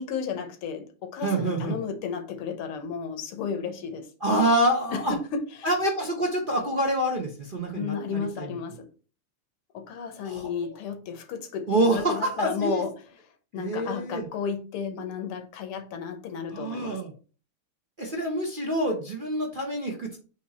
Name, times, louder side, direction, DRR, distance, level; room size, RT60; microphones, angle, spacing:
voice 1, 0.0-4.1 4.9-5.7 7.7-8.9 9.7-12.9 13.5-17.0, left 6 dB, 85° left, 1.9 m, -33 dB
voice 2, 1.2-1.8 4.2-5.1 5.6-8.5 10.2-10.5 11.7-12.8 13.5-14.3 16.5-17.1 18.0-20.2, right 1 dB, 35° right, 0.9 m, -26 dB
7.9 x 3.1 x 4.1 m
omnidirectional pair, 2.4 m